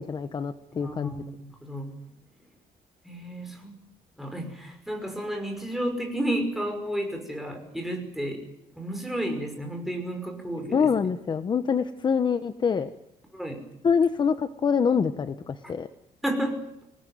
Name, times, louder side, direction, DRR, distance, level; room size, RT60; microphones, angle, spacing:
voice 1, 0.0-1.1 10.7-12.9 13.8-15.9, left 6 dB, 30° left, 11 dB, 1.0 m, -25 dB
voice 2, 0.7-1.9 3.0-3.7 4.2-8.4 8.8-11.1 13.3-13.6 15.6-15.7 16.2-16.6, right 1 dB, ahead, 3 dB, 5.7 m, -32 dB
26.0 x 19.0 x 9.4 m, 0.81 s
cardioid pair, 160°, 16 cm